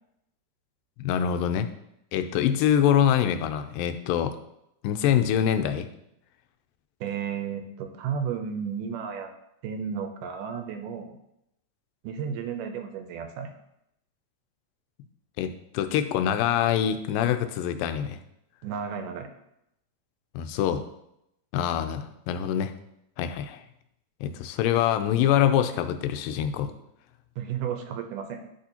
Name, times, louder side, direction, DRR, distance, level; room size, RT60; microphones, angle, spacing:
voice 1, 1.0-1.7 2.1-4.4 4.8-5.9 15.4-18.2 20.3-20.8 21.5-22.7 23.2-23.6 24.2-26.7, left 9 dB, 90° left, 9 dB, 2.3 m, -25 dB
voice 2, 7.0-9.3 9.6-11.2 12.0-13.5 18.6-19.3 27.4-28.4, right 7 dB, 80° right, 6 dB, 2.1 m, -33 dB
12.0 x 4.3 x 2.9 m, 0.80 s
omnidirectional pair, 3.9 m